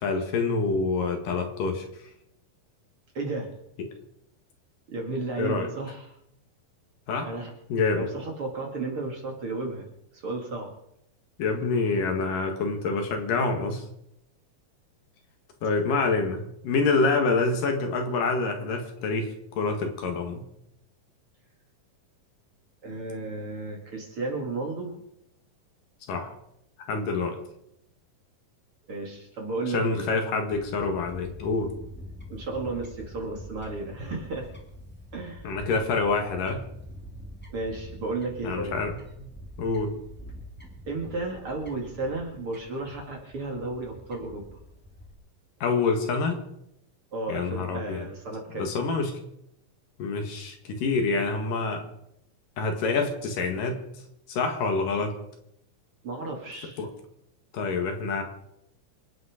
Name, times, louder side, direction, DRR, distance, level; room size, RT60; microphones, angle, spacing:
voice 1, 0.0-1.9 5.4-5.7 7.1-7.3 7.7-8.1 11.4-13.8 15.6-20.4 26.1-26.3 26.9-27.4 29.7-31.7 35.4-36.7 38.4-39.3 39.6-39.9 45.6-46.4 47.3-48.1 48.5-49.2 50.0-51.8 52.6-53.8 54.3-55.1 56.8-56.9 57.5-58.2, left 4 dB, 70° left, 4 dB, 3.3 m, -27 dB
voice 2, 3.1-3.5 4.9-6.1 7.2-7.5 8.0-9.9 10.1-10.7 22.8-25.0 28.9-30.1 32.3-34.5 35.1-35.6 37.5-38.8 40.9-44.4 47.1-48.7 56.0-56.8, right 3 dB, 40° right, 1 dB, 2.8 m, -33 dB
Fowl / Bird, 30.5-45.1, equal, 5° left, 1.8 m, -45 dB
27.0 x 9.3 x 5.1 m, 0.82 s
omnidirectional pair, 4.1 m